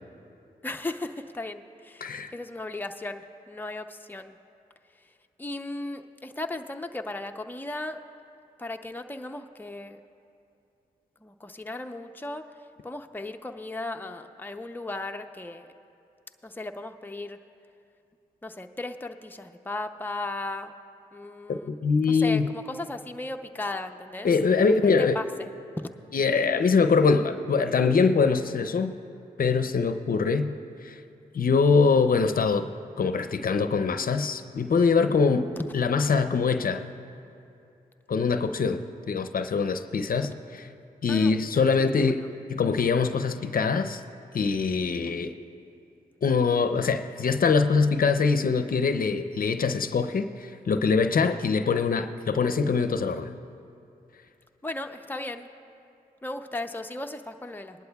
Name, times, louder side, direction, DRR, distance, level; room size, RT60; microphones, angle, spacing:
voice 1, 0.6-4.4 5.4-8.0 8.6-10.0 11.2-12.5 12.8-15.7 16.4-17.4 18.4-20.7 21.1-21.7 22.1-24.3 24.8-25.5 41.1-41.7 42.1-42.2 51.2-51.4 54.6-55.5 56.2-57.8, left 2 dB, 10° left, 5 dB, 0.6 m, -36 dB
voice 2, 2.0-2.3 21.5-22.4 24.2-25.2 26.1-29.0 29.4-30.5 30.8-31.0 31.3-32.7 33.0-36.8 38.1-38.8 39.1-40.3 41.0-44.0 44.3-45.3 46.2-53.3, left 5 dB, 60° left, 8 dB, 0.6 m, -23 dB
21.0 x 11.5 x 2.3 m, 2.7 s
supercardioid pair, 40°, 17 cm